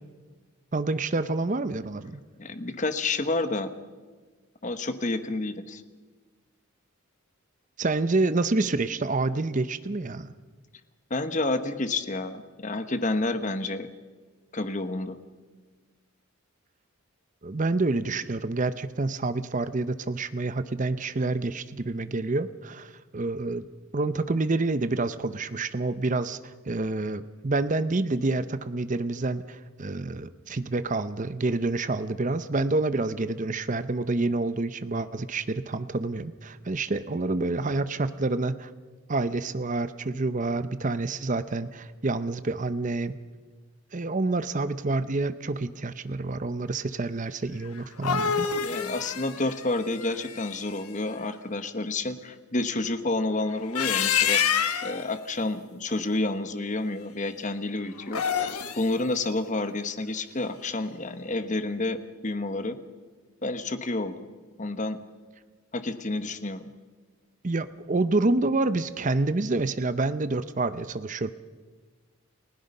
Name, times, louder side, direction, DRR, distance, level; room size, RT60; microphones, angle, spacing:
voice 1, 0.7-2.2 7.8-10.3 17.4-23.7 23.9-26.4 26.7-38.7 39.1-43.2 43.9-48.7 67.4-71.3, right 2 dB, 35° right, 13 dB, 0.6 m, -28 dB
voice 2, 2.4-3.7 4.6-5.8 11.1-13.9 14.5-15.2 48.6-54.4 54.8-58.2 58.8-62.8 63.4-64.2 64.6-65.0 65.7-66.6, left 2 dB, 35° left, 10 dB, 1.1 m, -29 dB
sound 1, 47.8-50.8 53.5-55.0 58.0-58.9, left 8 dB, 85° left, 1.3 m, -27 dB
30.0 x 16.5 x 5.5 m, 1.4 s
head